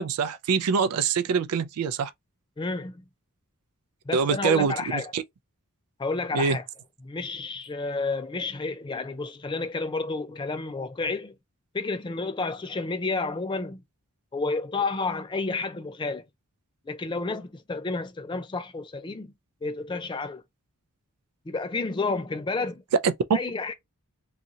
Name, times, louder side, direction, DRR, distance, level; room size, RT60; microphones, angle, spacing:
voice 1, 0.0-2.1 4.1-5.2 6.3-6.6 23.0-23.1, right 5 dB, 90° right, 0.4 m, -25 dB
voice 2, 2.6-3.0 4.1-5.1 6.0-6.6 7.0-11.4 11.7-13.8 14.3-16.2 16.9-19.3 19.6-20.4 21.5-22.8 23.3-23.7, left 3 dB, 20° left, 0.3 m, -30 dB
2.7 x 2.4 x 2.7 m
head